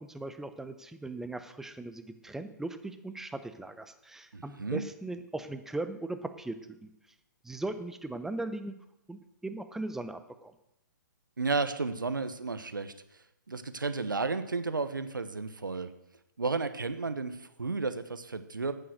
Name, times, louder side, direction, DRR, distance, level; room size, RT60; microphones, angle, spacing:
voice 1, 0.0-6.9 7.4-8.7 9.1-10.5, right 2 dB, 5° right, 10 dB, 0.7 m, -38 dB
voice 2, 4.3-4.8 11.4-12.9 13.5-15.9 16.4-18.7, right 4 dB, 85° right, 11 dB, 1.0 m, -32 dB
11.0 x 9.1 x 6.4 m, 0.82 s
figure-of-eight pair, 130°, 11 cm